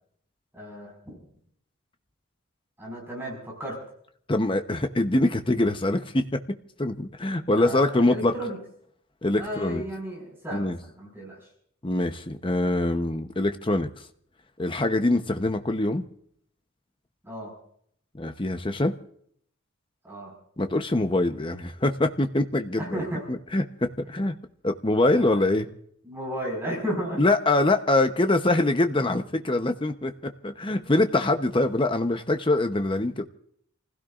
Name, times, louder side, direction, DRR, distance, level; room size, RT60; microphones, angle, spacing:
voice 1, 0.5-1.2 2.8-3.8 7.5-8.6 9.3-11.5 17.2-17.5 20.0-20.3 22.8-23.2 25.2-25.5 26.0-27.2, equal, 10° right, -2 dB, 5.2 m, -34 dB
voice 2, 4.3-6.4 6.8-8.3 9.2-9.8 10.5-10.8 11.8-13.9 14.6-16.0 18.1-18.9 20.6-24.3 24.6-25.7 27.2-33.3, left 2 dB, 25° left, 7 dB, 0.8 m, -24 dB
29.5 x 16.0 x 2.5 m, 0.65 s
head